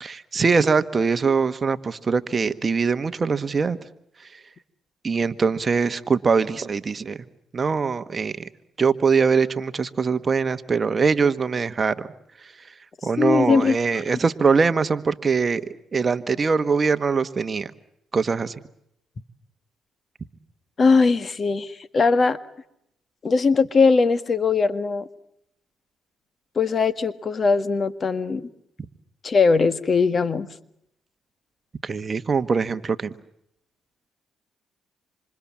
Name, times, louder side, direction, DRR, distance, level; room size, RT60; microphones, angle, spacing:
voice 1, 0.0-3.8 5.0-7.2 7.5-8.5 8.8-12.1 13.0-15.6 15.9-17.7 18.1-18.5 31.8-33.1, right 5 dB, 35° right, 12 dB, 1.4 m, -22 dB
voice 2, 13.2-13.7 20.8-22.4 23.2-25.1 26.5-28.5 29.2-30.5, left 4 dB, 40° left, 14 dB, 1.7 m, -20 dB
27.0 x 27.0 x 7.4 m, 0.77 s
cardioid pair, 90°, 0 cm